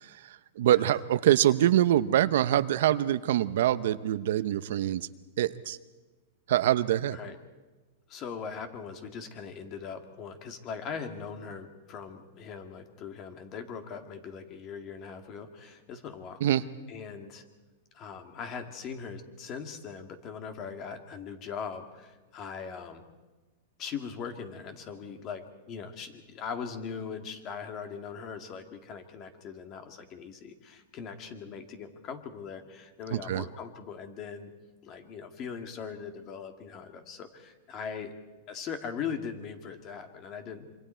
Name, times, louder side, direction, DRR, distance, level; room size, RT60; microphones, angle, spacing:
voice 1, 0.6-5.1 5.4-5.8 6.5-7.2 16.4-16.6 33.3-33.4, right 12 dB, 70° right, 14 dB, 0.7 m, -24 dB
voice 2, 8.1-16.4 16.9-17.5 17.9-23.0 23.8-34.5 34.8-38.1 38.5-40.7, left 6 dB, 35° left, 6 dB, 2.1 m, -40 dB
26.5 x 24.5 x 4.5 m, 1.2 s
hypercardioid pair, 140°, 0 cm